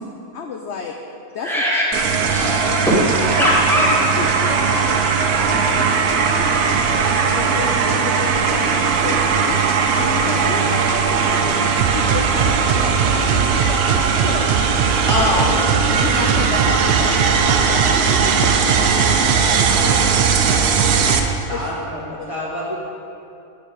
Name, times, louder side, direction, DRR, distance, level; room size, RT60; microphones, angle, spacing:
voice 1, 0.3-1.0 1.3-1.5 3.4-3.5 3.8-3.9 4.2-5.0 5.4-14.5 14.9-15.3 15.9-20.8 21.3-21.7, left 5 dB, 60° left, 2 dB, 0.9 m, -31 dB
voice 2, 1.4-3.9 5.6-5.8 15.1-15.5, equal, ahead, -8 dB, 2.5 m, -20 dB
sound 1, 1.9-21.2, right 5 dB, 85° right, 1.3 m, -19 dB
sound 2, 2.2-21.4, right 7 dB, 65° right, 0.6 m, -25 dB
voice 3, 21.5-22.7, left 1 dB, 25° left, -8 dB, 1.4 m, -29 dB
8.4 x 6.9 x 8.0 m, 2.7 s
omnidirectional pair, 1.5 m